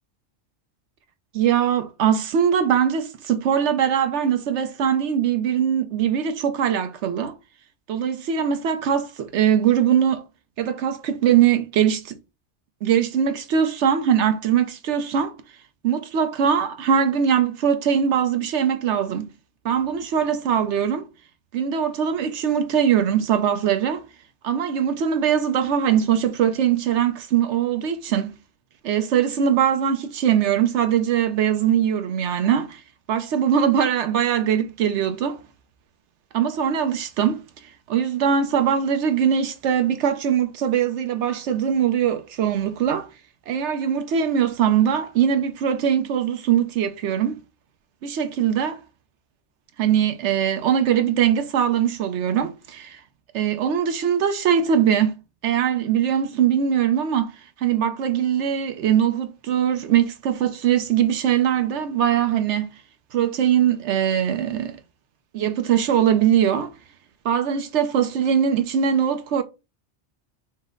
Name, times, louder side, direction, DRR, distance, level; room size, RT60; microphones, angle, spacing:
voice 1, 1.3-7.3 7.9-10.2 10.6-12.2 12.8-15.4 15.8-19.3 19.6-21.0 21.5-24.0 24.4-28.3 28.8-32.8 33.1-35.4 36.3-37.4 37.9-43.1 43.5-47.4 48.0-48.8 49.8-53.0 53.3-55.1 55.4-57.3 57.6-62.7 63.1-64.8 65.3-66.7 67.2-69.4, right 8 dB, 80° right, 0.9 m, -21 dB
5.6 x 2.1 x 3.6 m
omnidirectional pair, 1.2 m